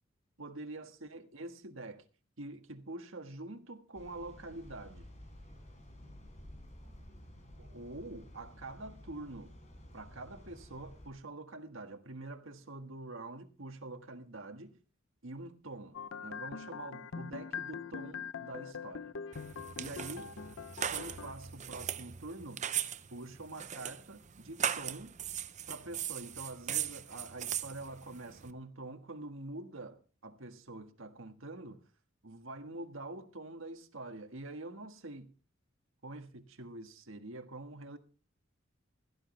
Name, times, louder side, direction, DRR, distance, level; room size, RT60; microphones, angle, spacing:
voice 1, 0.4-2.1 2.4-5.1 7.6-9.6 9.9-14.8 15.2-19.1 19.8-20.3 20.9-22.7 23.1-25.1 25.7-31.8 32.2-35.3 36.0-38.0, right 2 dB, 75° right, 1.7 m, -46 dB
sound 1, 3.9-11.1, left 1 dB, 35° left, 4.6 m, -53 dB
sound 2, 15.9-21.3, left 6 dB, 70° left, 0.6 m, -43 dB
sound 3, 19.3-28.5, right 9 dB, 35° right, 0.7 m, -39 dB
16.5 x 12.5 x 3.3 m
head